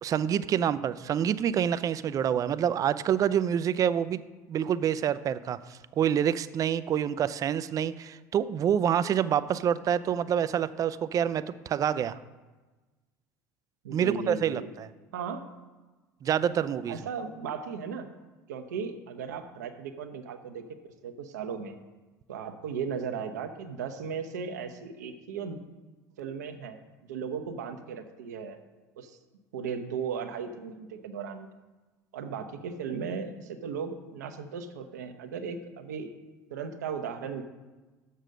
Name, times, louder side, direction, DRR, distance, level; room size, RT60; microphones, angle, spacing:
voice 1, 0.0-4.2 4.5-12.2 13.9-14.9 16.2-17.0, right 9 dB, 40° right, 15 dB, 0.4 m, -27 dB
voice 2, 13.8-14.7 15.1-15.5 16.9-18.1 18.5-21.8 22.3-25.6 26.2-26.8 27.1-28.6 29.0-29.2 29.5-31.5 32.1-36.1 36.5-37.4, right 6 dB, 85° right, 8 dB, 0.8 m, -36 dB
6.8 x 6.4 x 6.3 m, 1.2 s
hypercardioid pair, 75°, 9 cm